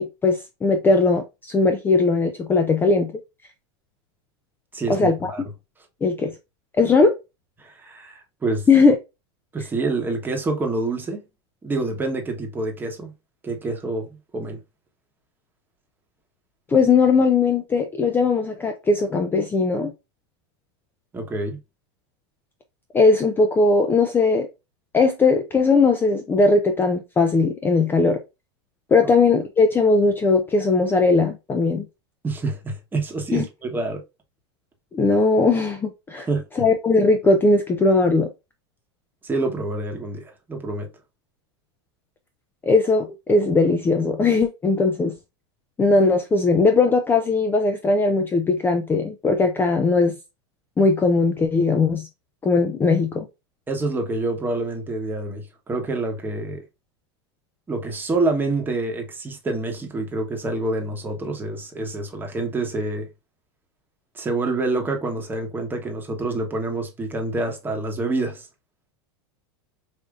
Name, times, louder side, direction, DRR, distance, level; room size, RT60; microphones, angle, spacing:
voice 1, 0.0-3.1 4.9-5.3 6.0-6.3 6.8-7.1 8.7-8.9 16.7-19.9 22.9-24.5 24.9-28.2 28.9-31.9 33.3-33.4 34.9-36.3 36.6-38.3 42.6-45.2 45.8-50.1 50.8-52.1 52.4-53.3, left 3 dB, 15° left, 0.4 m, -19 dB
voice 2, 4.7-5.4 7.6-8.7 9.5-11.2 11.6-13.1 13.4-14.6 21.1-21.6 29.0-29.1 32.2-34.0 36.1-36.4 39.2-40.9 53.7-56.6 57.7-63.1 64.1-68.5, right 2 dB, 15° right, 1.1 m, -27 dB
4.9 x 2.7 x 2.4 m
supercardioid pair, 125°, 14 cm